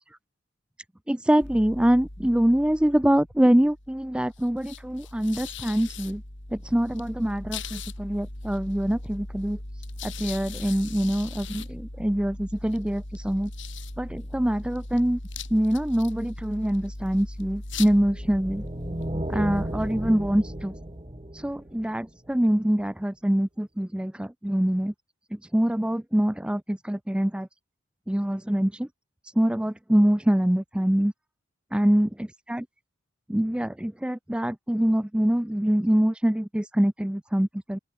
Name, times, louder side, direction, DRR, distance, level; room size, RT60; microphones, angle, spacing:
voice 1, 1.1-6.2 6.5-9.6 10.0-13.5 14.0-15.2 15.5-18.6 19.3-20.7 21.3-24.9 25.3-27.5 28.1-28.9 29.4-31.1 31.7-32.1 32.5-32.6 33.3-37.8, equal, 5° right, 0.4 m, -24 dB
sound 1, 1.4-21.3, left 2 dB, 65° left, 3.9 m, -39 dB
sound 2, 17.9-22.3, right 1 dB, 25° right, 1.5 m, -34 dB
open air
head